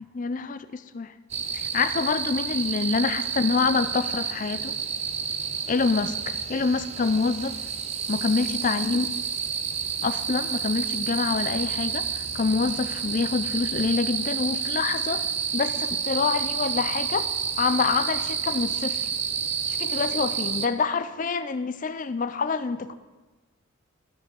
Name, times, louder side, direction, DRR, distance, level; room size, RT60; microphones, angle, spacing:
voice 1, 0.1-1.1 1.5-4.7 5.7-6.1 6.5-7.6 8.1-9.1 10.0-15.2 15.5-17.3 17.6-19.1 19.7-22.9, left 4 dB, 40° left, 13 dB, 0.4 m, -26 dB
sound 1, 1.3-20.7, right 7 dB, 30° right, 0.4 m, -30 dB
13.5 x 5.8 x 6.3 m, 1.3 s
head